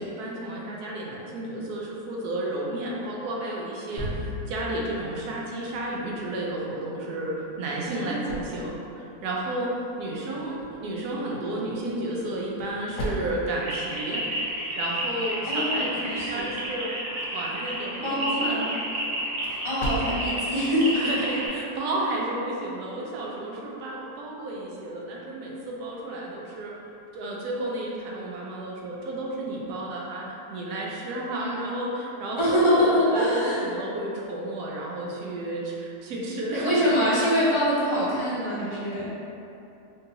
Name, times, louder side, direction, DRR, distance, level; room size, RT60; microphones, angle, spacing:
voice 1, 0.0-14.2 14.7-16.9 17.2-18.6 19.0-19.1 20.9-26.7 27.1-36.9, right 1 dB, 75° right, -3 dB, 1.1 m, -32 dB
sound 1, 4.0-6.4, left 1 dB, 20° right, 1.1 m, -36 dB
sound 2, 7.4-21.9, right 1 dB, 70° left, 1.0 m, -41 dB
voice 2, 7.8-8.4 15.5-16.5 18.0-18.7 19.6-21.0 31.3-31.7 32.3-33.7 36.5-39.1, equal, 30° left, -11 dB, 0.5 m, -24 dB
sound 3, 13.6-21.5, right 1 dB, 50° right, 0.4 m, -31 dB
3.7 x 2.7 x 2.7 m, 2.8 s
omnidirectional pair, 1.7 m